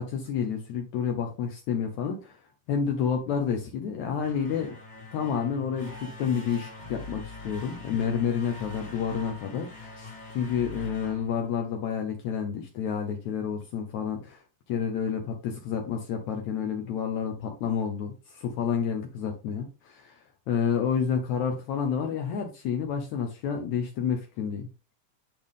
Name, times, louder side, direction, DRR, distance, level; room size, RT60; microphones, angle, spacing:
voice 1, 0.0-2.4 2.7-4.8 5.1-14.4 14.7-20.2 20.5-24.7, left 7 dB, 70° left, 4 dB, 2.1 m, -29 dB
sound 1, 4.2-12.0, left 2 dB, 45° left, 0.5 m, -44 dB
10.5 x 3.5 x 3.6 m, 0.31 s
omnidirectional pair, 3.6 m